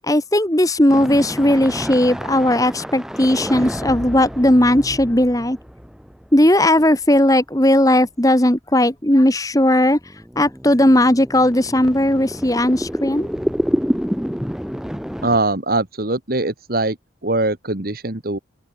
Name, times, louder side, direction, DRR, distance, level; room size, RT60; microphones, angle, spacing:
voice 1, 0.1-5.6 6.3-10.0 10.4-13.3, left 1 dB, 20° left, 1.7 m, -16 dB
sound 1, 0.9-6.7 7.3-7.4 8.0-8.1 9.9-15.4, equal, 5° right, 5.3 m, -28 dB
voice 2, 15.2-17.0 17.2-18.4, right 2 dB, 50° right, 1.8 m, -21 dB
open air
head